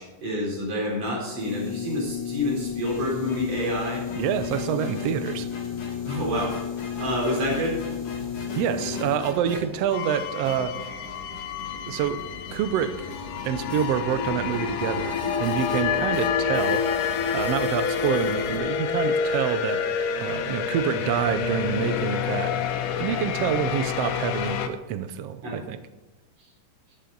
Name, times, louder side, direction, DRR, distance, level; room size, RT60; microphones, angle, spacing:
voice 1, 0.0-4.0 6.0-6.6 7.0-7.8 25.4-25.6, left 1 dB, 55° right, -3 dB, 4.9 m, -28 dB
sound 1, 1.4-9.2, left 9 dB, 25° left, 3.2 m, -33 dB
sound 2, 2.8-18.6, left 1 dB, 55° left, 3.2 m, -40 dB
voice 2, 4.1-5.5 8.6-10.8 11.9-12.2 12.5-13.1 13.4-16.9 17.3-19.8 20.2-22.6 23.0-25.8, right 9 dB, 80° right, 11 dB, 1.4 m, -27 dB
sound 3, 9.9-24.7, left 7 dB, 80° left, 2.4 m, -28 dB
12.5 x 8.8 x 3.9 m, 1.1 s
omnidirectional pair, 3.6 m